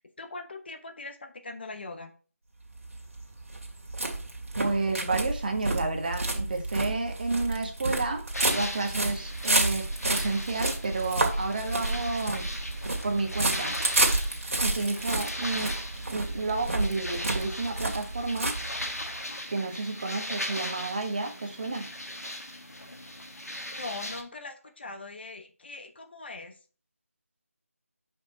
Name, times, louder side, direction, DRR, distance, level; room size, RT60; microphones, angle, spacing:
voice 1, 0.2-2.1 14.7-15.2 22.9-23.0 23.8-26.6, left 3 dB, 45° left, 7 dB, 1.0 m, -41 dB
sound 1, 2.7-19.2, right 2 dB, 60° right, 2.1 m, -30 dB
voice 2, 4.6-12.5 13.0-13.8 14.6-15.7 16.1-18.5 19.5-21.9, right 3 dB, 35° right, 5 dB, 1.2 m, -31 dB
sound 2, 8.3-24.2, left 1 dB, 85° left, 1.8 m, -38 dB
6.3 x 5.4 x 4.1 m, 0.39 s
figure-of-eight pair, 160°, 8 cm